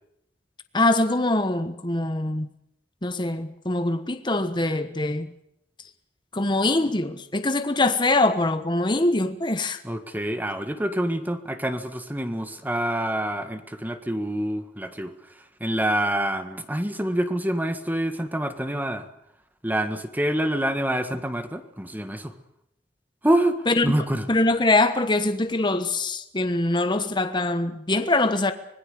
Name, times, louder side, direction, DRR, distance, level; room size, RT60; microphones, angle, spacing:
voice 1, 0.7-2.5 3.0-5.3 6.3-9.8 23.7-23.9 24.3-28.5, left 2 dB, 25° left, 1.3 m, -23 dB
voice 2, 9.8-15.1 15.6-19.1 19.6-22.3 23.2-23.6 23.8-24.3, right 1 dB, 10° right, 1.7 m, -26 dB
25.0 x 21.0 x 6.7 m
head